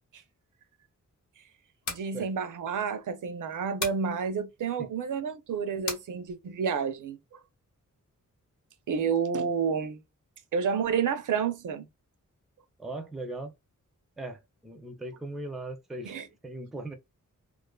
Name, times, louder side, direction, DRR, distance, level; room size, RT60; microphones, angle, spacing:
sound 1, 1.7-2.1 3.8-4.1 5.9-6.1, left 4 dB, 65° left, 0.8 m, -34 dB
voice 1, 1.9-7.4 8.9-10.0 10.5-11.9 16.0-16.3, right 6 dB, 75° right, 0.5 m, -30 dB
voice 2, 12.8-13.5 14.2-16.2 16.4-16.9, right 2 dB, ahead, 0.3 m, -38 dB
2.4 x 2.4 x 2.2 m
wide cardioid pair, 160°, 31 cm